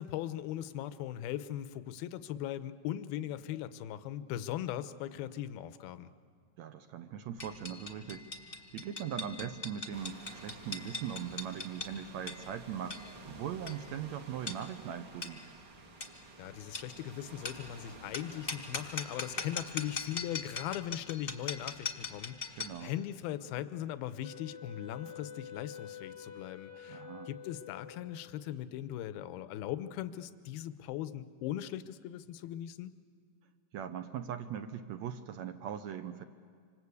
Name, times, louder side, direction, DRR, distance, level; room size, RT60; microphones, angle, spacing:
voice 1, 0.0-6.1 16.4-33.0, left 12 dB, 85° left, 13 dB, 2.7 m, -39 dB
voice 2, 6.6-13.0 13.3-15.4 22.6-22.9 26.9-27.3 33.7-36.2, right 8 dB, 75° right, 9 dB, 1.6 m, -40 dB
sound 1, 7.4-22.9, left 4 dB, 25° left, 1.1 m, -42 dB
sound 2, 9.9-20.2, right 4 dB, 50° right, 1.4 m, -53 dB
Wind instrument woodwind instrument, 24.2-28.5, left 8 dB, 65° left, 1.5 m, -48 dB
26.5 x 26.5 x 8.4 m, 2.1 s
omnidirectional pair, 4.3 m